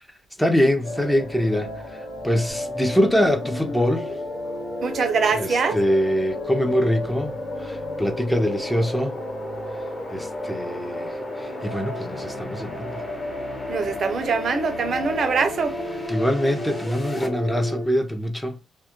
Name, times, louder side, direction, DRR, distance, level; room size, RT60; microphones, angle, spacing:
voice 1, 0.4-4.1 5.4-7.3 7.6-9.2 10.1-13.0 16.1-18.6, equal, 5° left, 0.4 m, -24 dB
sound 1, 0.8-17.9, left 1 dB, 85° left, 0.7 m, -33 dB
sound 2, 2.5-17.3, left 1 dB, 20° left, 0.9 m, -38 dB
voice 2, 4.8-5.8 13.7-15.8, right 5 dB, 55° right, 0.4 m, -23 dB
2.2 x 2.1 x 2.8 m
cardioid pair, 90°, 0 cm